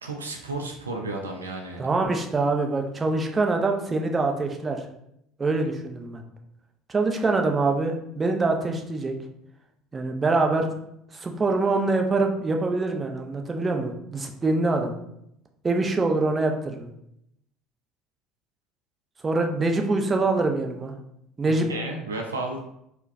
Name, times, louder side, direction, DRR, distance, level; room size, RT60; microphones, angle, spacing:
voice 1, 0.0-1.8 21.5-22.6, right 2 dB, 85° right, 2 dB, 0.4 m, -33 dB
voice 2, 1.8-4.8 5.4-6.2 6.9-9.1 9.9-10.7 11.1-14.9 15.6-16.9 19.2-20.9 21.4-21.7, right 3 dB, 25° right, 3 dB, 0.5 m, -24 dB
4.4 x 2.2 x 2.5 m, 0.77 s
hypercardioid pair, 65°, 0 cm